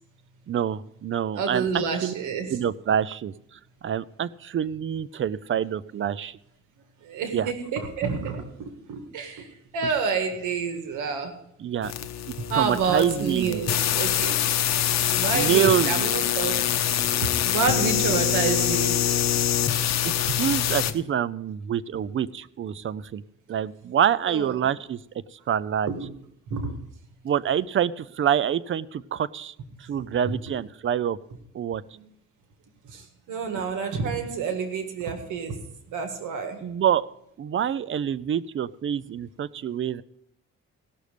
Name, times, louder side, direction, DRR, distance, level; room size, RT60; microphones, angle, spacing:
voice 1, 0.5-2.1 2.5-6.4 7.3-7.5 11.6-11.9 12.5-13.6 15.3-16.0 20.0-23.2 23.5-25.0 25.3-25.9 27.2-29.5 29.8-31.2 31.5-31.8 36.6-37.1 37.4-40.0, right 9 dB, 40° right, 18 dB, 0.5 m, -26 dB
voice 2, 1.4-2.5 7.0-9.5 9.7-11.4 12.4-14.4 15.1-16.6 16.9-19.2 20.3-20.4 24.3-24.7 25.9-26.1 26.5-26.8 30.0-30.3 32.8-35.6 35.9-36.6, right 5 dB, 85° right, 6 dB, 1.8 m, -29 dB
sound 1, 11.8-20.9, left 10 dB, 60° left, 0.9 m, -24 dB
17.0 x 6.5 x 5.0 m, 0.74 s
cardioid pair, 90°, 30 cm